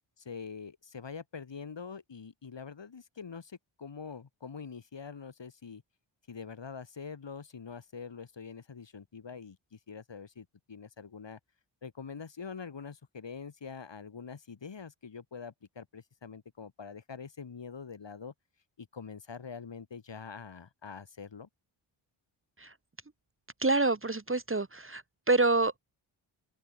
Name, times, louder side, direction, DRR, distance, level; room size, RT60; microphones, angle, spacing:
voice 1, 0.2-5.8 6.3-11.4 11.8-18.3 18.8-21.5, left 5 dB, 60° left, 6.4 m, -44 dB
voice 2, 23.6-25.0 25.3-25.8, right 3 dB, 25° right, 2.0 m, -26 dB
open air
cardioid pair, 65°, 50 cm